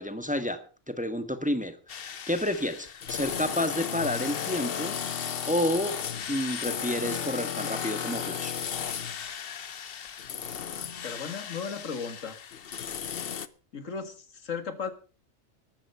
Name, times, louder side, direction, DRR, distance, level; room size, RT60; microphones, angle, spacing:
voice 1, 0.0-5.0 5.5-6.0 6.3-8.6, left 1 dB, 5° right, 10 dB, 1.4 m, -30 dB
sound 1, 1.9-13.5, left 8 dB, 55° left, 1.0 m, -35 dB
voice 2, 10.7-12.4 13.7-14.9, left 5 dB, 90° left, 10 dB, 2.2 m, -36 dB
13.5 x 13.5 x 5.6 m, 0.36 s
omnidirectional pair, 1.3 m